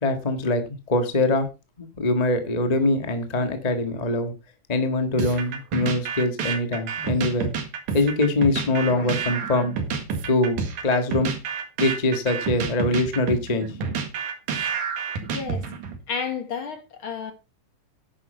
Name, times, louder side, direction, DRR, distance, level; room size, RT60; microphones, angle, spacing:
voice 1, 0.0-0.6 0.9-1.5 1.8-4.3 4.7-7.5 7.9-11.3 11.8-13.7, left 2 dB, 25° left, 0.8 m, -23 dB
sound 1, 5.2-16.0, right 6 dB, 75° right, 3.3 m, -29 dB
voice 2, 15.3-15.7 16.1-17.3, left 6 dB, 50° left, 1.8 m, -31 dB
10.5 x 8.9 x 4.4 m
omnidirectional pair, 3.6 m